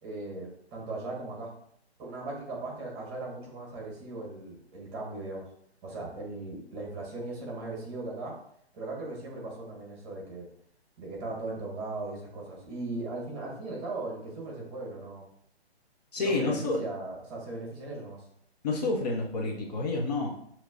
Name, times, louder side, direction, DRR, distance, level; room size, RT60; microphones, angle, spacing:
voice 1, 0.0-1.5 2.0-5.4 5.8-8.3 8.7-10.5 11.0-15.2 16.2-18.2, right 2 dB, 25° right, -2 dB, 1.4 m, -38 dB
voice 2, 16.1-16.8 18.6-20.3, left 3 dB, 40° left, -1 dB, 0.7 m, -29 dB
6.6 x 2.9 x 2.5 m, 0.69 s
hypercardioid pair, 145°, 32 cm